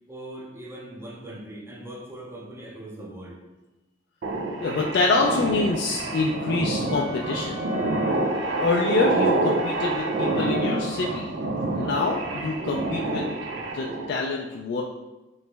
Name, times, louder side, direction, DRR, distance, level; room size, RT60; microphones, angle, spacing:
voice 1, 0.1-3.4, right 1 dB, 15° right, -2 dB, 0.5 m, -40 dB
sound 1, 4.2-14.1, right 2 dB, 90° right, 0.4 m, -27 dB
voice 2, 4.6-7.6 8.6-11.3 11.7-13.2 13.7-14.8, left 3 dB, 60° left, -2 dB, 0.3 m, -26 dB
Wind instrument woodwind instrument, 6.9-11.0, left 5 dB, 70° right, 1.5 m, -39 dB
3.1 x 2.9 x 3.3 m, 1.1 s
head